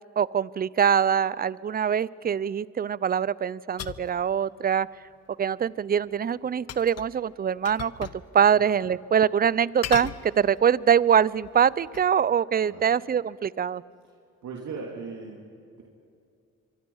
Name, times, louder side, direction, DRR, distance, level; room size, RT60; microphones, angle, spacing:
voice 1, 0.2-4.9 5.4-8.1 8.3-13.8, right 8 dB, 30° right, 22 dB, 0.5 m, -23 dB
sound 1, 3.8-4.1 6.7-7.2 7.6-8.2 8.6-8.7 9.8-10.8 11.3-12.1, left 10 dB, 55° left, 0.9 m, -37 dB
voice 2, 14.4-15.8, right 4 dB, 70° right, 0 dB, 2.8 m, -39 dB
25.0 x 24.0 x 5.6 m, 2.4 s
cardioid pair, 90°, 30 cm